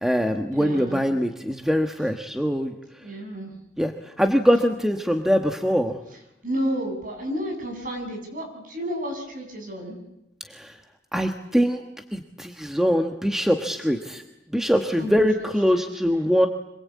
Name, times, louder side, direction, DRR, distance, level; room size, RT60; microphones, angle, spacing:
voice 1, 0.0-3.0 3.8-6.0 10.5-10.8 11.1-11.8 12.1-14.2 14.5-16.5, equal, 5° right, 5 dB, 1.3 m, -23 dB
voice 2, 0.5-1.1 3.0-3.5 6.4-10.0 15.0-15.1 15.4-15.5 15.7-15.9, equal, 45° right, 2 dB, 7.7 m, -31 dB
26.5 x 21.0 x 8.5 m, 0.86 s
head